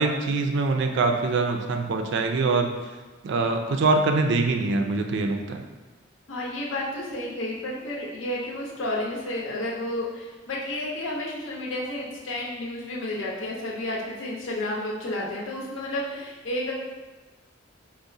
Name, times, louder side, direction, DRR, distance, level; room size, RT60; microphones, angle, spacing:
voice 1, 0.0-2.7 3.2-5.6, right 3 dB, 65° right, 4 dB, 0.4 m, -24 dB
voice 2, 6.3-16.7, left 1 dB, 75° left, -3 dB, 0.7 m, -31 dB
4.6 x 2.0 x 2.6 m, 1.2 s
head